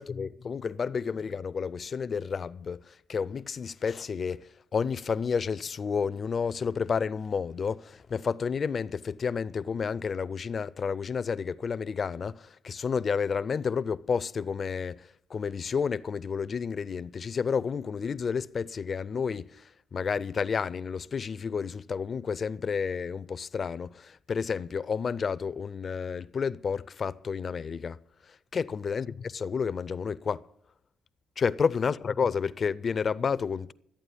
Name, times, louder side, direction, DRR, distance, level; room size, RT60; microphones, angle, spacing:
voice 1, 0.0-30.5 31.4-33.7, left 6 dB, 45° left, 0.5 m, -31 dB
13.0 x 8.7 x 8.3 m
cardioid pair, 90°, 0 cm